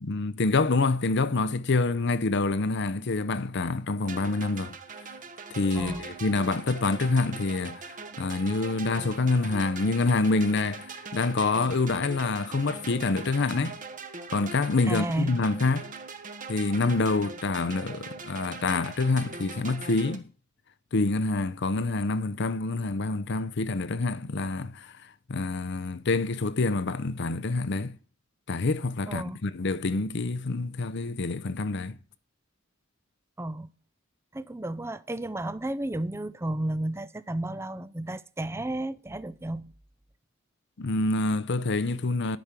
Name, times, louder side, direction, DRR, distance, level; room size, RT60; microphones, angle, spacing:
voice 1, 0.0-4.7 5.5-13.8 14.3-15.9 16.5-20.3 20.9-24.9 25.3-28.0 28.5-32.0 40.8-42.4, left 3 dB, 60° left, 0.7 m, -27 dB
sound 1, 4.0-20.2, right 4 dB, 40° right, 1.3 m, -42 dB
voice 2, 14.9-15.4 29.1-29.4 33.4-33.7 34.3-39.7, right 1 dB, 15° right, 0.5 m, -32 dB
10.5 x 6.2 x 8.2 m
head